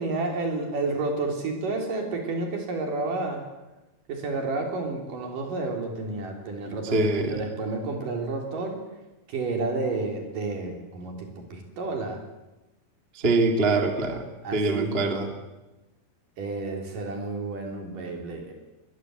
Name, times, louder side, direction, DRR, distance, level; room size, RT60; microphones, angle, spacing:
voice 1, 0.0-3.4 4.1-8.8 9.3-12.2 14.4-15.0 16.4-18.5, right 3 dB, 60° right, 2 dB, 5.0 m, -30 dB
voice 2, 6.9-7.4 13.1-14.2 14.5-15.3, right 3 dB, 20° right, 4 dB, 1.9 m, -23 dB
22.5 x 21.0 x 7.9 m, 1.0 s
omnidirectional pair, 4.5 m